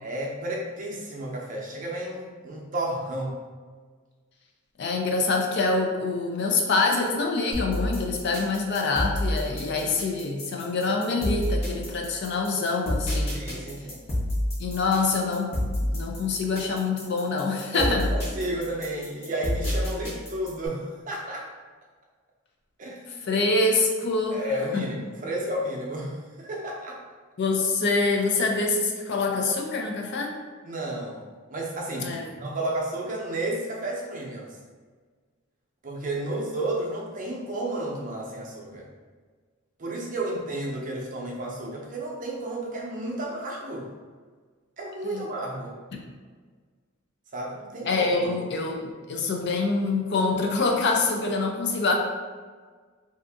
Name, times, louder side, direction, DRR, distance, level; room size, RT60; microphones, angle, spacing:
voice 1, 0.0-3.3 9.5-9.6 10.0-10.1 13.3-14.0 17.7-21.5 22.8-23.3 24.3-27.0 30.6-31.2 31.5-34.6 35.8-38.9 39.8-43.9 44.8-45.7 47.3-48.3 48.6-48.7, right 1 dB, 40° right, -2 dB, 0.6 m, -32 dB
voice 2, 4.8-13.4 14.6-15.5 15.8-18.1 23.3-24.4 24.7-24.9 27.4-30.4 32.0-32.3 45.0-45.2 47.8-51.9, left 3 dB, 55° left, 1 dB, 0.4 m, -25 dB
sound 1, 7.5-20.7, left 1 dB, 30° left, 0.9 m, -29 dB
2.7 x 2.5 x 3.5 m, 1.5 s
head